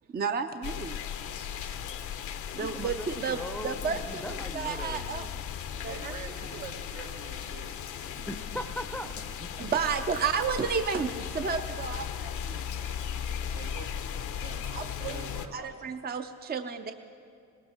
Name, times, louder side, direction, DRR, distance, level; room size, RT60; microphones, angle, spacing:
voice 1, 0.1-1.0 1.6-1.7 2.5-4.2 4.5-5.3 5.8-6.1 9.6-12.6 14.7-15.3 15.5-16.9, right 6 dB, 30° right, 8 dB, 0.6 m, -32 dB
sound 1, 0.6-15.5, left 8 dB, 80° left, 0.9 m, -37 dB
voice 2, 2.6-5.3 8.3-9.1 9.4-9.7, equal, 5° left, 8 dB, 0.7 m, -40 dB
voice 3, 5.9-8.3 8.6-8.7 9.4-9.5 9.9-10.0 12.8-14.0 14.4-15.8, right 6 dB, 75° right, 3 dB, 1.4 m, -47 dB
18.5 x 16.5 x 4.5 m, 2.3 s
cardioid pair, 90°, 30 cm